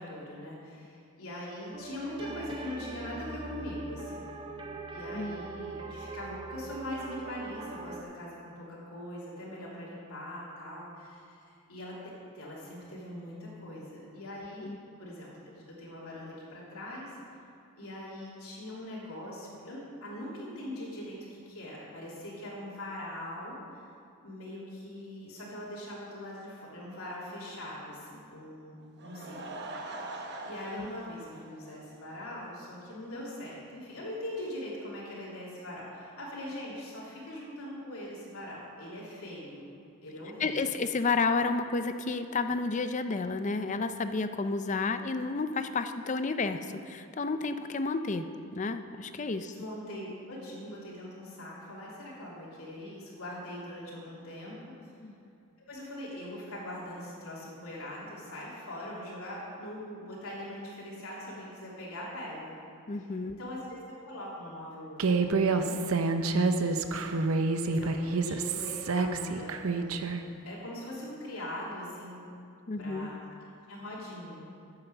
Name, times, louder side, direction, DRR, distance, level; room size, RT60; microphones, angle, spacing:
voice 1, 0.0-4.3 4.9-14.7 15.0-17.2 17.8-23.6 24.2-28.8 29.0-29.6 30.4-39.7 40.0-40.8 49.5-54.9 55.6-62.5 62.9-63.1 63.4-65.9 66.5-67.3 67.6-70.1 70.4-72.3 72.8-73.2 73.7-74.4, left 1 dB, 85° left, -6 dB, 3.1 m, -42 dB
sound 1, 1.7-8.0, right 3 dB, 20° right, 0.6 m, -42 dB
Laughter / Crowd, 28.8-32.3 32.6-32.7 33.2-33.3 33.5-33.6, right 2 dB, 50° right, 0.9 m, -43 dB
voice 2, 40.4-48.3 48.5-49.5 55.0-55.1 62.9-63.4 72.7-73.1, left 4 dB, 35° left, 9 dB, 0.5 m, -31 dB
Human voice, 65.0-70.2, right 3 dB, 75° right, 0.6 m, -28 dB
9.6 x 7.9 x 6.9 m, 2.5 s
head